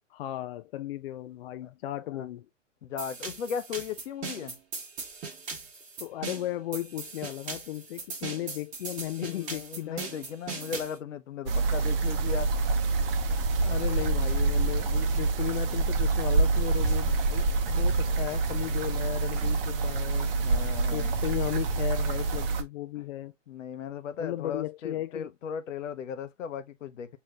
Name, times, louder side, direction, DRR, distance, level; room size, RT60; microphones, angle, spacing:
voice 1, 0.1-2.5 6.0-10.1 13.6-20.3 20.9-23.3 24.2-25.3, left 14 dB, 50° left, 0.5 m, -35 dB
voice 2, 2.8-4.6 9.2-12.5 17.9-18.1 20.4-21.2 23.5-27.2, left 7 dB, 80° left, 0.9 m, -37 dB
sound 1, 3.0-11.0, right 4 dB, 20° right, 1.5 m, -39 dB
sound 2, 11.5-22.6, right 3 dB, 50° right, 0.8 m, -26 dB
6.3 x 3.0 x 2.4 m
hypercardioid pair, 145°, 38 cm